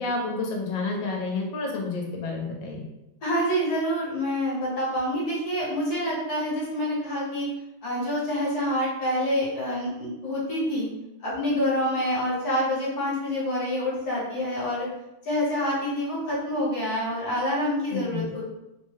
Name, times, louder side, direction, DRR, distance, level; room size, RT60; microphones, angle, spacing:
voice 1, 0.0-2.8 17.9-18.2, left 3 dB, 85° left, 0 dB, 1.5 m, -30 dB
voice 2, 3.2-7.5 7.8-10.9 11.2-14.9 15.2-18.4, equal, 60° left, -6 dB, 1.6 m, -27 dB
3.8 x 2.1 x 3.2 m, 0.91 s
omnidirectional pair, 2.0 m